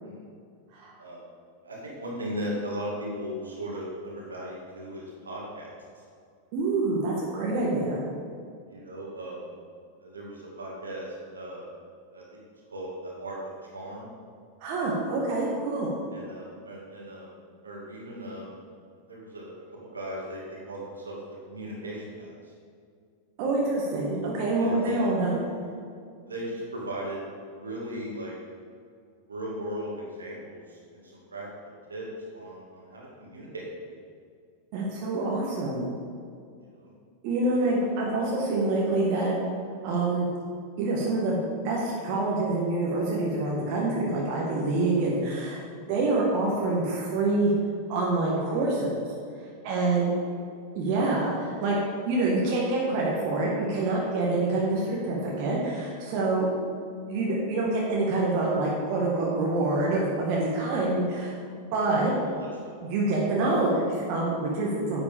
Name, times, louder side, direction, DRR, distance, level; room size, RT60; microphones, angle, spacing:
voice 1, 1.6-5.7 8.7-9.5 10.0-11.7 12.1-12.2 12.7-14.1 16.1-18.6 19.1-21.2 21.5-22.5 24.6-25.2 26.3-28.3 29.3-32.1 32.3-33.7 36.7-36.9 37.4-37.6 38.3-38.4 45.8-45.9 49.8-50.3 61.0-61.3 62.3-62.8, right 1 dB, 75° right, -4 dB, 2.2 m, -38 dB
voice 2, 6.5-8.0 14.6-15.9 23.4-25.4 34.7-35.9 37.2-39.3 39.8-40.3 40.8-45.6 45.9-47.5 47.9-49.0 49.6-50.1 50.7-56.5 57.1-62.1 62.8-65.0, right 2 dB, 45° right, -4 dB, 1.6 m, -26 dB
9.8 x 7.9 x 3.6 m, 2.2 s
figure-of-eight pair, 90°, 0 cm